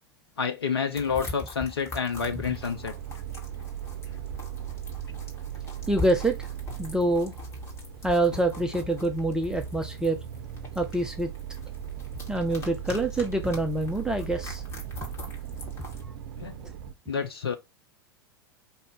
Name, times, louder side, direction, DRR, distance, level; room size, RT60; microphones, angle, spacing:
voice 1, 0.4-2.9 16.4-16.6 17.1-17.6, left 6 dB, 75° left, 0.6 m, -29 dB
sound 1, 0.9-16.0, left 3 dB, 20° left, 2.0 m, -42 dB
sound 2, 2.1-16.9, right 10 dB, 55° right, 0.6 m, -38 dB
voice 2, 5.9-6.3 6.8-7.3 8.0-10.2 10.8-11.3 12.3-14.6, right 2 dB, 5° right, 0.6 m, -26 dB
5.2 x 2.8 x 3.3 m
figure-of-eight pair, 90°, 13 cm